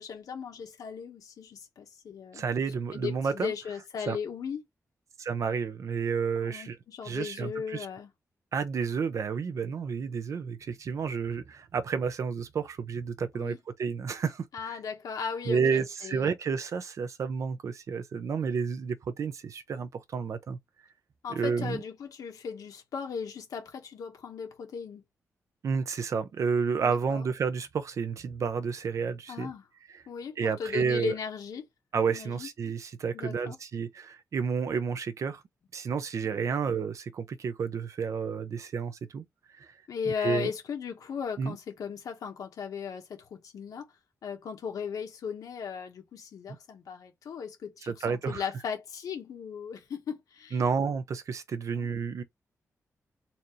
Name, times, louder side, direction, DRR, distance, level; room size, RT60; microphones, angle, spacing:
voice 1, 0.0-2.4 2.9-4.6 6.4-8.1 13.3-13.6 14.5-16.3 21.2-25.0 26.8-27.2 29.3-29.6 30.1-31.6 32.1-32.5 33.1-33.6 36.2-36.6 39.9-43.8 44.2-50.6 51.7-51.9, left 6 dB, 90° left, 1.2 m, -37 dB
voice 2, 2.3-3.5 4.1-4.2 5.2-6.8 7.0-7.9 8.5-14.8 15.5-20.6 21.3-21.8 25.6-29.5 30.4-31.1 31.9-35.4 35.7-39.2 39.6-39.7 40.2-40.5 41.4-41.6 47.9-48.5 50.5-52.2, right 6 dB, 60° right, 0.6 m, -31 dB
4.2 x 2.6 x 3.1 m
wide cardioid pair, 135°, 6 cm